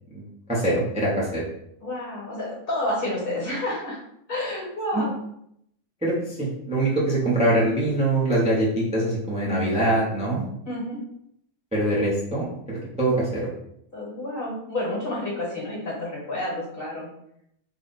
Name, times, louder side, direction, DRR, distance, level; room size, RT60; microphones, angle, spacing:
voice 1, 0.1-1.5 4.9-5.0 6.0-10.4 11.7-13.5, right 1 dB, 5° right, -7 dB, 0.8 m, -23 dB
voice 2, 1.8-4.0 4.3-5.1 10.7-11.0 13.9-17.1, left 1 dB, 45° left, -4 dB, 1.4 m, -29 dB
3.5 x 2.4 x 4.1 m, 0.74 s
omnidirectional pair, 1.4 m